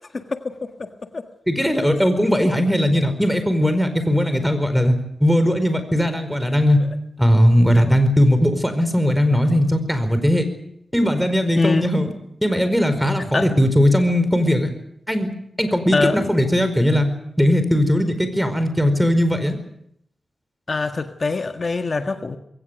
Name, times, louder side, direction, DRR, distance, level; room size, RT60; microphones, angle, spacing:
voice 1, 0.1-1.2 2.4-2.5 7.9-8.0 11.6-11.9 13.3-13.5 15.9-16.2 20.7-22.4, left 3 dB, 50° left, 7 dB, 1.6 m, -24 dB
voice 2, 1.5-4.9 5.2-6.8 7.2-10.5 10.9-12.1 12.4-14.7 15.1-15.3 15.6-17.1 17.4-19.6, equal, ahead, 9 dB, 4.8 m, -18 dB
22.0 x 18.0 x 9.2 m, 0.75 s
cardioid pair, 65°, 0 cm